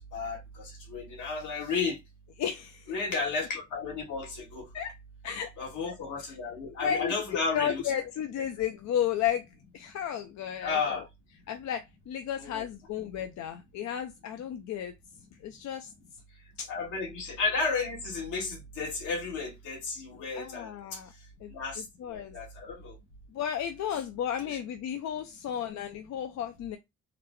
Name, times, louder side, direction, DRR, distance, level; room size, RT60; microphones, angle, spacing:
voice 1, 0.1-2.0 2.9-4.7 5.6-8.1 10.6-11.1 12.4-12.7 16.7-21.0 21.5-21.8 22.1-23.0, left 4 dB, 85° left, 1.6 m, -33 dB
voice 2, 2.4-2.9 4.7-4.9 5.2-5.5 5.9-6.0 6.8-7.1 7.5-9.5 9.7-11.0 11.5-14.9 15.4-15.9 16.6-16.7 20.3-21.1 21.4-22.4 23.3-26.8, left 9 dB, 65° left, 0.5 m, -33 dB
3.9 x 2.2 x 3.0 m
cardioid pair, 90°, 30 cm